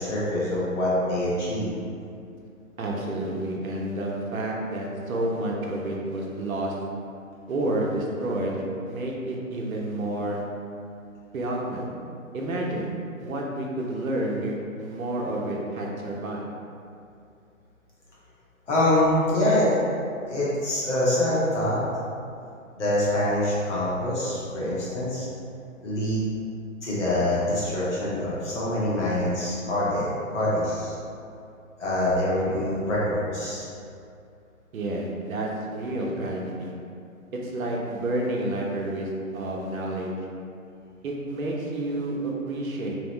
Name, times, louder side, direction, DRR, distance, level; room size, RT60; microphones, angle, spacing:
voice 1, 0.0-1.7 18.7-19.7 20.3-21.8 22.7-25.3 25.8-26.3 26.8-30.9 31.8-33.6, left 1 dB, 55° left, -7 dB, 1.1 m, -25 dB
voice 2, 2.8-6.7 7.5-10.4 11.3-11.9 12.3-12.9 13.2-16.4 34.7-36.7 37.3-40.1 41.0-42.9, right 1 dB, 80° right, -2 dB, 0.7 m, -29 dB
3.0 x 2.0 x 2.9 m, 2.5 s
hypercardioid pair, 150°, 41 cm